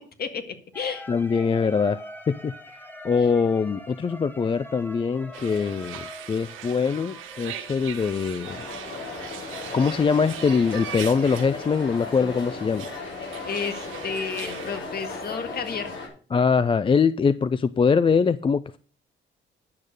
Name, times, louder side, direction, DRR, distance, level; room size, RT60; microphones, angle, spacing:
voice 1, 0.0-1.1 3.2-3.3 13.5-16.0, left 5 dB, 50° left, 8 dB, 1.8 m, -32 dB
sound 1, 0.7-12.5, left 1 dB, 10° left, 1.4 m, -45 dB
voice 2, 1.1-2.0 2.3-2.5 3.0-8.6 9.7-12.9 16.3-18.8, left 5 dB, 25° left, 15 dB, 0.4 m, -23 dB
sound 2, 5.3-14.8, right 10 dB, 85° right, 1.2 m, -40 dB
sound 3, 8.4-16.1, left 3 dB, 75° left, 4.8 m, -36 dB
10.5 x 6.4 x 6.5 m, 0.42 s
cardioid pair, 90°, 20 cm